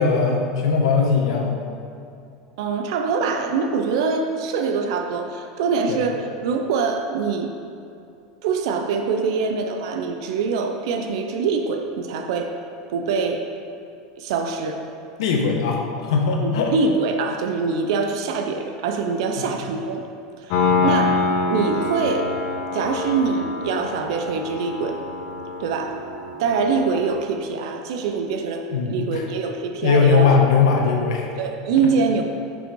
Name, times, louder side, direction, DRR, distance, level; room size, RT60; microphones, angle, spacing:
voice 1, 0.0-1.6 5.9-6.0 15.2-16.7 19.4-19.5 20.8-21.0 28.7-29.2 29.8-31.3, left 5 dB, 85° left, 1 dB, 1.1 m, -20 dB
voice 2, 2.6-7.5 8.4-12.5 12.9-13.4 14.2-14.8 16.4-20.0 20.4-21.2 21.5-22.3 22.7-25.0 25.6-26.0 26.4-28.6 28.9-30.3 31.4-32.2, right 5 dB, 70° right, 4 dB, 0.6 m, -24 dB
Piano, 20.5-27.2, left 3 dB, 55° left, 0.8 m, -26 dB
7.3 x 5.4 x 4.6 m, 2.5 s
supercardioid pair, 160°, 3 cm